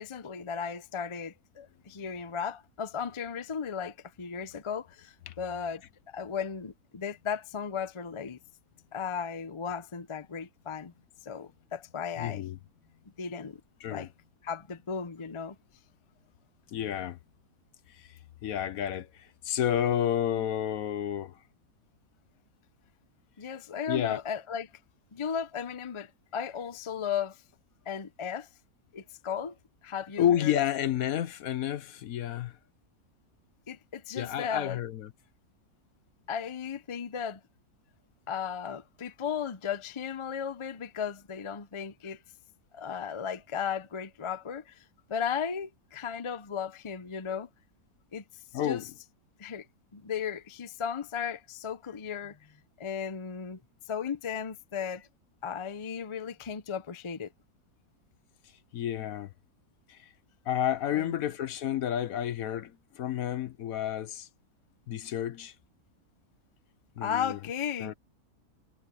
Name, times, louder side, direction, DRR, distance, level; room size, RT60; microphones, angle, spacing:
voice 1, 0.0-5.8 6.1-8.4 8.9-10.9 11.2-12.4 13.2-13.6 13.9-14.1 14.4-15.6 23.4-24.7 25.1-27.4 27.9-28.5 28.9-29.5 29.8-30.5 33.7-34.8 36.3-37.4 38.3-42.2 42.7-47.5 48.1-48.2 48.6-48.8 49.4-49.7 49.9-52.4 52.8-53.6 53.9-55.0 55.4-57.3 60.9-61.3 67.0-67.9, left 7 dB, 35° left, 0.5 m, -35 dB
voice 2, 12.2-12.6 13.8-14.1 16.7-17.2 18.4-19.1 19.4-21.3 23.9-24.2 30.2-32.5 34.1-35.1 48.5-48.9 58.7-59.3 59.9-60.0 60.5-64.3 64.9-65.5 67.0-67.4 67.8-67.9, left 10 dB, 70° left, 1.2 m, -30 dB
omnidirectional pair, 1.6 m